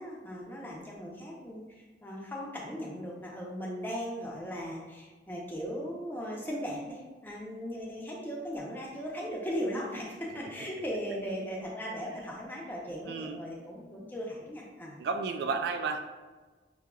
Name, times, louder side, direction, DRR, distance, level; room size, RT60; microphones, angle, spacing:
voice 1, 0.0-15.0, equal, 10° left, -3 dB, 0.7 m, -38 dB
voice 2, 13.1-13.4 15.0-16.0, right 4 dB, 60° right, 6 dB, 0.3 m, -32 dB
6.0 x 2.8 x 2.3 m, 1.3 s
head